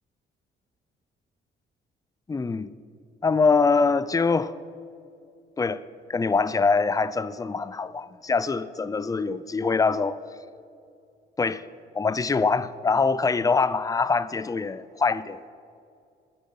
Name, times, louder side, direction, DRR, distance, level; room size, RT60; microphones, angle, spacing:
voice 1, 2.3-2.7 3.2-4.5 5.6-5.8 6.1-10.2 11.4-11.6 11.9-15.4, left 4 dB, 15° left, 0.5 m, -24 dB
22.0 x 8.4 x 5.6 m
cardioid pair, 90°, 20 cm